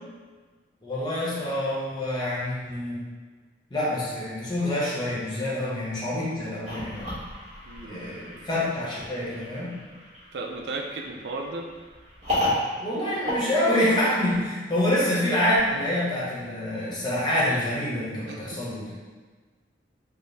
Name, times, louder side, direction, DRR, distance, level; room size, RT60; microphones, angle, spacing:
voice 1, 0.8-3.0 3.7-7.2 7.8-9.8 12.4-12.5 12.8-19.0, left 1 dB, 25° left, -7 dB, 0.9 m, -27 dB
sound 1, 6.6-14.3, left 1 dB, 40° right, 1.2 m, -33 dB
voice 2, 7.7-8.0 10.3-11.7 18.3-18.6, right 3 dB, 75° right, 2 dB, 0.4 m, -35 dB
4.2 x 2.0 x 3.3 m, 1.4 s
head